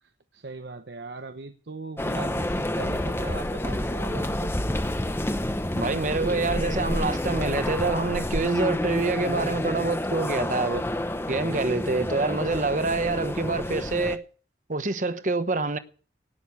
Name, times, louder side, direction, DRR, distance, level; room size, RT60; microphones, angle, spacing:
voice 1, 0.0-4.5, right 3 dB, 70° right, 0.9 m, -39 dB
sound 1, 2.0-14.2, left 1 dB, 15° left, 0.8 m, -29 dB
voice 2, 5.7-10.8 11.3-14.2 14.7-15.8, right 3 dB, 45° right, 1.0 m, -26 dB
18.0 x 6.7 x 8.4 m
head